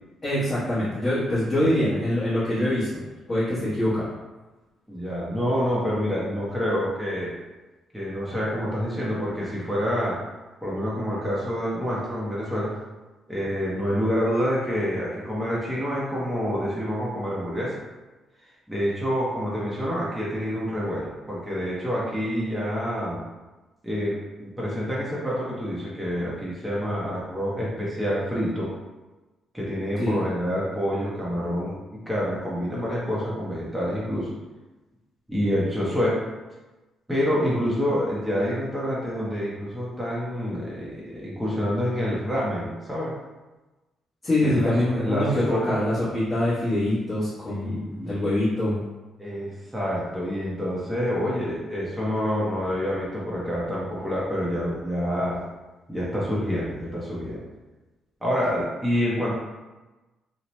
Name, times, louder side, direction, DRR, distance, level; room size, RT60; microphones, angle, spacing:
voice 1, 0.2-3.0 3.3-4.1 30.0-30.2 44.2-48.8, left 1 dB, 25° left, -11 dB, 1.0 m, -24 dB
voice 2, 1.5-2.0 4.9-7.3 7.9-10.2 10.6-12.7 13.3-17.8 18.7-23.2 23.8-28.7 29.5-34.3 35.3-36.2 37.1-43.1 44.4-45.8 47.5-48.2 49.2-55.4 55.9-57.4 58.2-59.3, equal, 5° right, -7 dB, 0.7 m, -27 dB
2.8 x 2.1 x 3.0 m, 1.1 s
cardioid pair, 90°, 0 cm